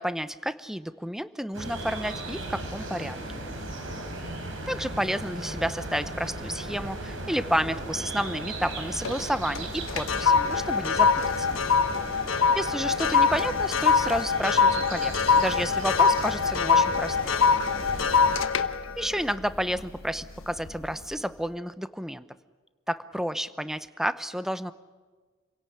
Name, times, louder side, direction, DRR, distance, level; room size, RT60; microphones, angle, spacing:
voice 1, 0.0-3.4 4.7-11.1 11.4-11.6 12.5-17.4 19.0-22.2 22.9-24.7, equal, ahead, 13 dB, 0.8 m, -31 dB
sound 1, 1.5-18.4, right 1 dB, 75° right, 5.0 m, -36 dB
sound 2, 8.7-9.2 9.6-20.1 20.6-20.9, left 5 dB, 85° left, 1.2 m, -24 dB
28.5 x 17.5 x 8.6 m, 1.4 s
head